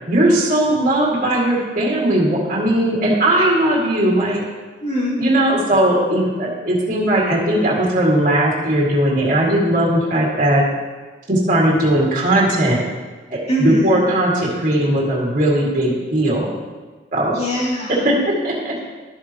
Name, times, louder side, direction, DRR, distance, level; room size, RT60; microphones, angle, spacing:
voice 1, 0.1-4.4 5.2-10.6 11.3-12.8 13.3-16.5 17.1-17.4 18.0-18.7, right 1 dB, 45° right, -5 dB, 2.2 m, -18 dB
voice 2, 4.8-5.2 13.5-14.0 17.3-18.0, equal, 35° left, -6 dB, 2.6 m, -22 dB
13.0 x 7.3 x 3.0 m, 1.3 s
head